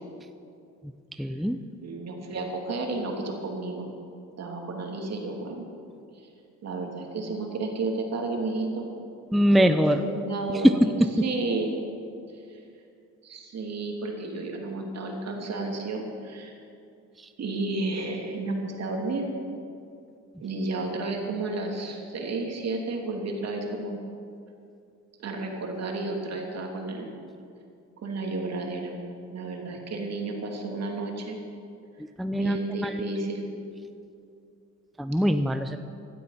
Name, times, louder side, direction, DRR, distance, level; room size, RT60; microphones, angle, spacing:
voice 1, 1.2-1.6 9.3-10.0 10.6-11.2 17.2-17.3 32.2-32.6 32.8-32.9 35.0-35.8, equal, ahead, 8 dB, 0.6 m, -22 dB
voice 2, 1.8-3.9 4.4-5.7 6.1-6.3 6.6-8.9 9.5-10.9 11.2-11.7 12.3-12.6 13.2-16.5 17.4-19.3 20.4-24.0 25.2-27.1 28.0-28.9 29.3-31.4 32.3-33.5, right 3 dB, 60° right, 1 dB, 2.9 m, -32 dB
16.5 x 12.5 x 5.9 m, 2.5 s
cardioid pair, 90°, 30 cm